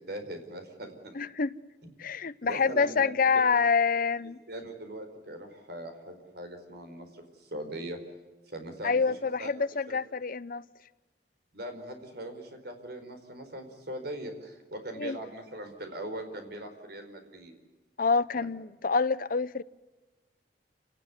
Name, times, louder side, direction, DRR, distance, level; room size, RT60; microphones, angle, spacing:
voice 1, 0.0-1.2 1.8-1.9 2.4-3.1 4.5-8.0 8.5-9.0 9.4-9.5 9.9-10.0 11.5-17.5 18.3-18.5, right 1 dB, 65° right, 4.7 m, -40 dB
voice 2, 1.1-1.5 2.0-4.4 8.8-10.6 15.0-15.2 18.0-19.6, left 5 dB, 50° left, 0.8 m, -27 dB
28.5 x 18.5 x 9.5 m
head